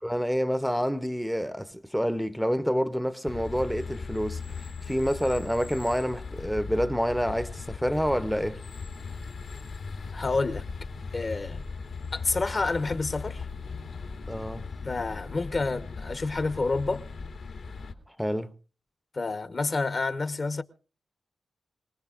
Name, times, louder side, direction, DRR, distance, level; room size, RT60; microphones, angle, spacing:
voice 1, 0.0-8.6 14.3-14.7 18.1-18.5, equal, ahead, 0.7 m, -28 dB
sound 1, 3.3-17.9, left 4 dB, 80° left, 2.2 m, -38 dB
voice 2, 10.1-10.6 11.1-11.6 12.1-13.4 14.8-17.1 19.1-20.6, left 3 dB, 45° left, 1.0 m, -29 dB
25.5 x 19.0 x 2.5 m
cardioid pair, 70°, 0 cm